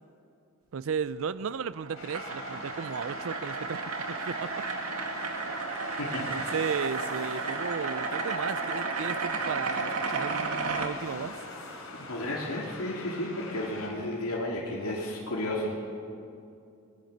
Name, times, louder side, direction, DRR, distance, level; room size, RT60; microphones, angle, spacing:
voice 1, 0.7-3.8 4.1-4.5 6.3-11.4, right 6 dB, 65° right, 17 dB, 0.4 m, -34 dB
sound 1, 1.4-10.9, right 4 dB, 90° right, 2.1 m, -33 dB
sound 2, 1.9-13.9, left 2 dB, 65° left, 4.0 m, -44 dB
voice 2, 6.0-6.5 12.0-15.7, left 1 dB, 85° left, -3 dB, 2.6 m, -33 dB
25.5 x 19.0 x 6.7 m, 2.5 s
head